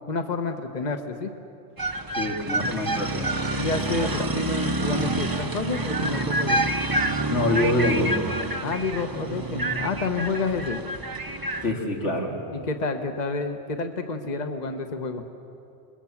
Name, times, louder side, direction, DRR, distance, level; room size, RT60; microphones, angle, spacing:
voice 1, 0.1-1.3 3.5-6.6 8.6-10.8 12.5-15.2, left 3 dB, 40° left, 6 dB, 1.2 m, -29 dB
sound 1, 1.8-11.7, right 2 dB, 20° right, 0.8 m, -27 dB
voice 2, 2.1-3.7 4.0-4.3 7.3-8.3 11.6-12.4, left 2 dB, 85° left, 0 dB, 3.2 m, -26 dB
29.0 x 21.5 x 7.3 m, 2.7 s
omnidirectional pair, 1.2 m